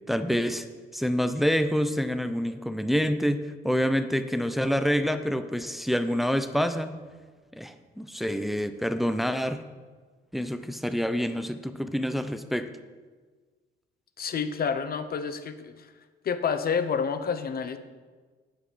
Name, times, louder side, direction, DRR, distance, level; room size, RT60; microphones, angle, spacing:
voice 1, 0.1-0.6 0.9-7.0 7.6-9.6 10.3-12.7, equal, ahead, 10 dB, 0.6 m, -27 dB
voice 2, 14.2-15.9 16.2-17.8, left 6 dB, 50° left, 10 dB, 0.9 m, -29 dB
8.6 x 7.9 x 5.7 m, 1.4 s
cardioid pair, 90°, 20 cm